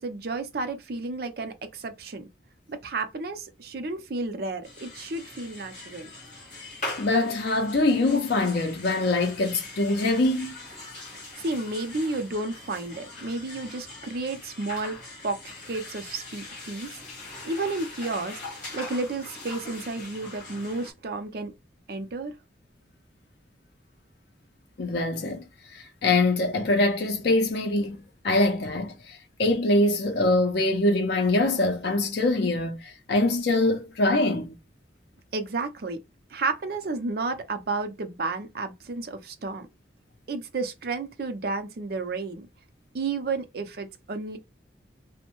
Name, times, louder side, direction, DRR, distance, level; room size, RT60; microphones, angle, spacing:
voice 1, 0.0-2.3 2.7-6.1 11.4-15.0 15.2-17.0 17.4-21.5 21.9-22.3 35.3-36.0 36.3-39.7 40.3-42.5 42.9-44.4, right 3 dB, 55° right, 0.5 m, -32 dB
sound 1, 4.6-20.9, left 2 dB, 45° left, 1.3 m, -41 dB
voice 2, 7.0-10.5 24.8-25.4 25.7-28.0 28.2-34.5, left 2 dB, 60° left, 0.5 m, -24 dB
2.6 x 2.1 x 2.9 m
head